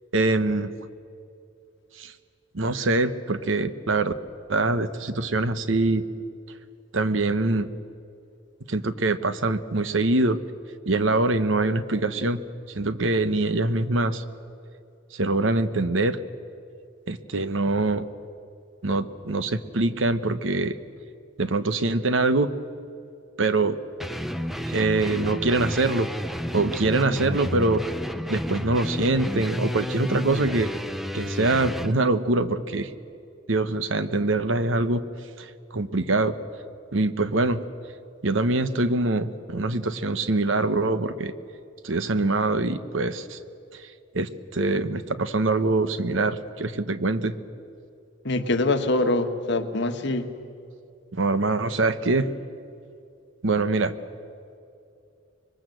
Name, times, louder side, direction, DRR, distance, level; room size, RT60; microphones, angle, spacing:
voice 1, 0.1-0.7 2.0-2.1 2.5-4.1 4.5-6.0 6.9-7.7 8.7-10.4 10.9-12.4 12.7-14.2 15.1-16.2 17.1-18.1 18.8-20.8 21.4-22.5 23.4-23.8 24.7-26.1 26.5-27.8 28.3-30.7 31.1-32.9 33.5-35.0 35.4-36.4 36.9-37.6 38.2-41.3 41.8-43.4 43.7-43.8 44.1-47.3 51.1-52.3 53.4-53.9, right 2 dB, 70° right, 12 dB, 1.1 m, -24 dB
sound 1, 24.0-31.9, equal, ahead, 0.8 m, -31 dB
voice 2, 48.2-50.3, left 2 dB, 60° left, 7 dB, 1.6 m, -24 dB
25.5 x 22.5 x 7.8 m, 2.5 s
head